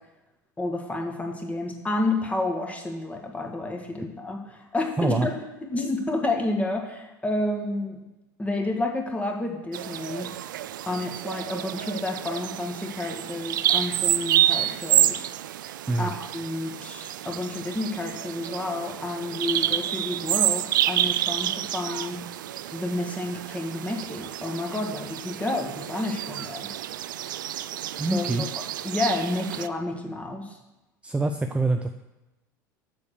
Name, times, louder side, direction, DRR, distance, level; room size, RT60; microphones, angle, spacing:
voice 1, 0.6-5.3 5.6-8.0 8.4-10.3 10.8-15.3 16.0-22.2 22.7-26.7 28.1-28.5 28.8-30.6, left 2 dB, 10° left, 1 dB, 1.7 m, -30 dB
voice 2, 5.0-5.3 15.9-16.1 28.0-28.5 31.0-31.9, right 2 dB, 10° right, 7 dB, 0.5 m, -25 dB
Bird vocalization bird call bird song, 9.7-29.7, right 12 dB, 70° right, 0.4 m, -29 dB
7.0 x 6.3 x 6.6 m, 1.0 s
figure-of-eight pair, 75°, 11 cm